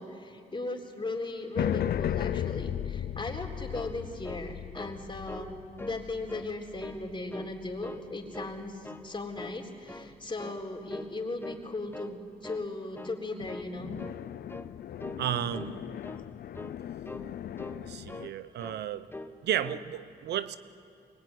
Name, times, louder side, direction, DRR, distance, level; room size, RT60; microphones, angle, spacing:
voice 1, 0.0-5.5 5.8-14.0, left 2 dB, 30° left, 2 dB, 3.8 m, -37 dB
sound 1, 1.5-8.1 13.4-18.3, left 11 dB, 70° left, 0.5 m, -36 dB
sound 2, 3.7-5.0 5.3-5.5 5.8-6.5 6.8-7.6 7.8-8.6 8.8-9.1 9.4-10.1 10.4-10.6 10.9-11.2 11.4-12.2 12.4-12.7 13.0-13.2 13.5-13.7 14.0-14.2 14.5-14.7 15.0-15.3 15.5-15.8 16.0-16.3 16.5-16.8 17.1-17.3 17.6-18.3 18.6-18.8 19.1-19.4 19.6-19.9, left 2 dB, 15° left, 1.1 m, -43 dB
voice 2, 15.2-15.8 17.8-19.1 19.4-20.6, right 10 dB, 90° right, 14 dB, 0.8 m, -33 dB
23.5 x 21.0 x 9.5 m, 2.5 s
cardioid pair, 70°, 17 cm